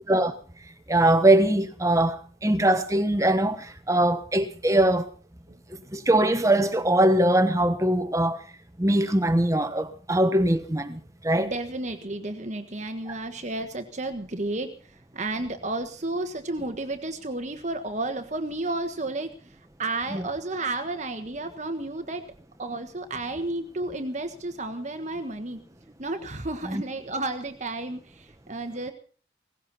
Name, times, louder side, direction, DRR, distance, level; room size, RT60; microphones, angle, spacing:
voice 1, 0.9-2.2 2.4-3.6 3.9-5.1 5.9-8.4 8.8-11.0 11.2-11.5 20.1-20.2 26.6-26.8, right 1 dB, 15° right, 1.3 m, -21 dB
voice 2, 11.4-22.2 22.6-25.6 26.0-28.9, right 2 dB, 35° right, 1.4 m, -32 dB
18.5 x 16.0 x 4.2 m
head